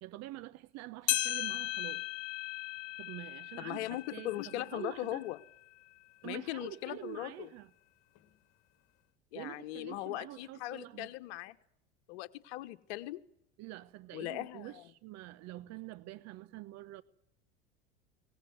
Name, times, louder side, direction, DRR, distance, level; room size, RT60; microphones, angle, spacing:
voice 1, 0.0-2.0 3.0-5.2 6.2-7.7 9.3-11.1 13.6-17.0, right 16 dB, 50° right, 1.1 m, -46 dB
sound 1, 1.1-5.7 6.2-6.3 7.1-7.2 8.2-8.3, left 16 dB, 45° left, 2.1 m, -37 dB
voice 2, 3.6-5.4 6.2-7.5 9.3-11.6 12.1-13.2 14.1-14.8, left 16 dB, 60° left, 1.4 m, -39 dB
23.5 x 19.5 x 9.6 m
hypercardioid pair, 80°, 35 cm